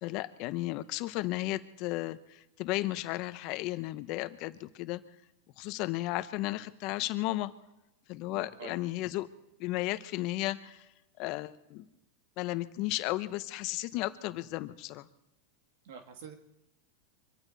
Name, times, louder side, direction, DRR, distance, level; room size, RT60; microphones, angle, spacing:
voice 1, 0.0-5.0 5.6-7.5 8.1-9.3 9.6-10.9 11.2-11.9 12.4-15.1, left 17 dB, 55° left, 12 dB, 1.0 m, -34 dB
voice 2, 8.3-8.8 15.8-16.3, right 7 dB, 70° right, 5 dB, 2.0 m, -46 dB
24.5 x 14.0 x 4.2 m, 0.88 s
hypercardioid pair, 110°, 0 cm